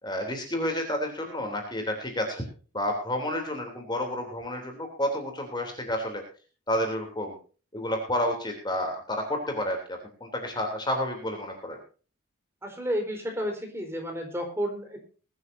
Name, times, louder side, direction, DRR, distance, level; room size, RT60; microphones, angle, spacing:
voice 1, 0.0-2.4 2.7-6.2 6.7-7.3 7.7-11.8, left 1 dB, 20° left, 4 dB, 3.1 m, -30 dB
voice 2, 12.6-15.0, equal, 10° right, 3 dB, 4.3 m, -31 dB
21.0 x 12.5 x 2.7 m, 0.38 s
head